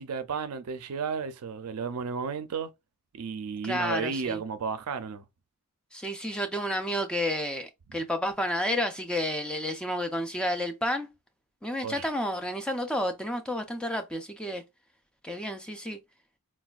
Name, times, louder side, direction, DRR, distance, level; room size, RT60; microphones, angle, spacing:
voice 1, 0.0-2.7 3.1-5.2 11.8-12.0, right 5 dB, 75° right, 0.4 m, -33 dB
voice 2, 3.6-4.4 5.9-11.1 11.6-14.6 15.2-16.0, left 1 dB, 5° left, 0.4 m, -31 dB
4.1 x 2.2 x 2.3 m
head